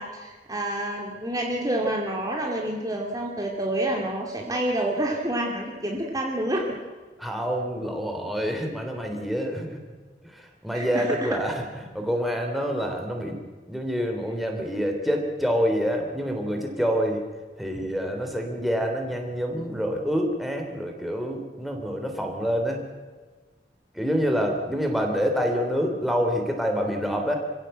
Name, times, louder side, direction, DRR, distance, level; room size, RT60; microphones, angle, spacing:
voice 1, 0.0-6.6 10.7-11.3, right 1 dB, 20° right, 0 dB, 2.5 m, -28 dB
voice 2, 7.2-9.8 10.2-13.4 13.7-17.2 17.6-22.9 23.9-27.4, equal, ahead, 2 dB, 3.3 m, -27 dB
27.0 x 16.0 x 7.9 m, 1.4 s
head